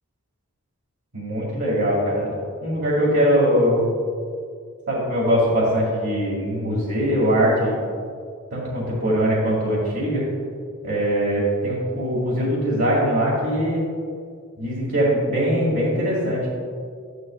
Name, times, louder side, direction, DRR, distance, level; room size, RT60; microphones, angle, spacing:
voice 1, 1.1-2.3 2.6-3.8 4.9-7.7 8.5-10.2 10.8-13.8 14.6-16.5, equal, 70° right, -8 dB, 2.3 m, -21 dB
13.0 x 11.0 x 2.4 m, 2.2 s
head